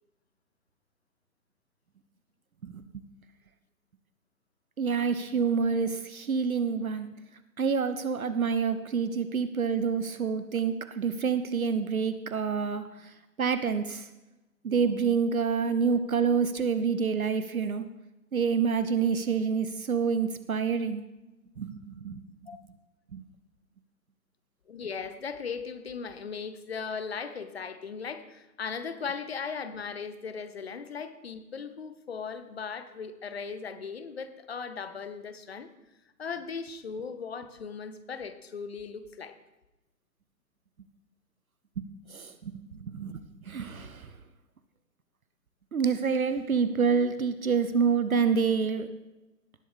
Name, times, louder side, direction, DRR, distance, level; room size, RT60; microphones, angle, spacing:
voice 1, 2.6-3.0 4.8-7.1 7.6-13.1 13.4-14.1 14.6-17.9 18.3-21.0 21.6-22.4 23.1-23.2 41.8-44.1 45.7-48.9, right 6 dB, 55° right, 11 dB, 0.8 m, -28 dB
voice 2, 24.7-35.7 36.2-39.4, left 5 dB, 40° left, 11 dB, 0.8 m, -38 dB
17.5 x 7.8 x 3.5 m, 1.0 s
figure-of-eight pair, 140°, 50 cm